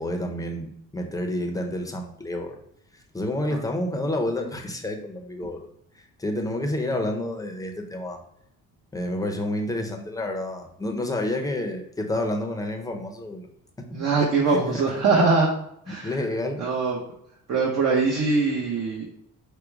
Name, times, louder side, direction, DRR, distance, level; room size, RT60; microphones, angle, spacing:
voice 1, 0.0-2.6 2.9-5.7 6.0-8.2 8.9-13.5 13.8-15.0 15.9-16.6, left 1 dB, 10° left, 2 dB, 0.6 m, -29 dB
voice 2, 13.9-15.5 15.9-16.1 16.6-17.0 17.5-19.0, right 4 dB, 55° right, -3 dB, 1.0 m, -22 dB
5.0 x 2.2 x 4.6 m, 0.73 s
cardioid pair, 120°, 32 cm